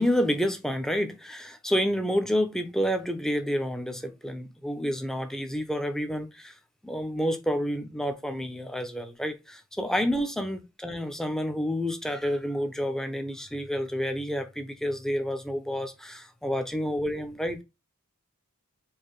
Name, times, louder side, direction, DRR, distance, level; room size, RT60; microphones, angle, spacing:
voice 1, 0.0-6.5 6.8-17.6, equal, ahead, 0.5 m, -29 dB
4.6 x 2.6 x 3.0 m
head